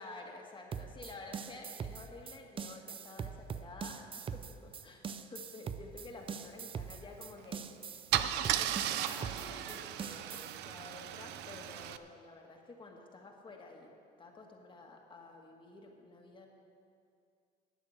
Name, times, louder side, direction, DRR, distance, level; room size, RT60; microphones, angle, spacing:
voice 1, 0.0-16.5, left 3 dB, 30° left, 0 dB, 1.6 m, -51 dB
sound 1, 0.7-10.6, right 6 dB, 30° right, 0.5 m, -42 dB
Car / Engine starting / Idling, 7.4-7.6 8.1-12.0, right 12 dB, 85° right, 0.5 m, -35 dB
12.0 x 8.3 x 6.4 m, 2.3 s
cardioid pair, 110°, 17 cm